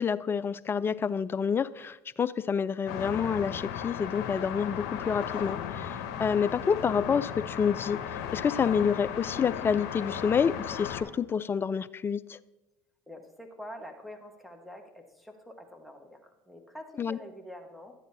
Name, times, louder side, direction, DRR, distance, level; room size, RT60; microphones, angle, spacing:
voice 1, 0.0-8.0 8.3-12.4 17.0-17.2, left 6 dB, 25° left, 18 dB, 0.3 m, -28 dB
sound 1, 2.9-11.0, left 9 dB, 70° left, 0.8 m, -36 dB
voice 2, 13.1-17.9, equal, ahead, 3 dB, 1.4 m, -46 dB
12.0 x 9.2 x 2.8 m, 0.99 s
hypercardioid pair, 80°, 9 cm